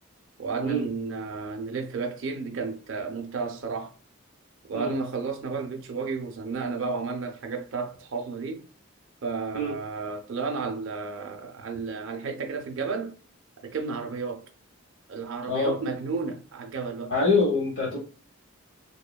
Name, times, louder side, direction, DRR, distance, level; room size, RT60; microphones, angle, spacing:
voice 1, 0.4-4.0 4.7-8.6 9.2-13.2 13.6-14.4 15.1-17.2, right 4 dB, 65° right, 0.4 m, -32 dB
voice 2, 17.1-18.0, left 3 dB, 75° left, 0.9 m, -24 dB
3.0 x 2.1 x 2.2 m
head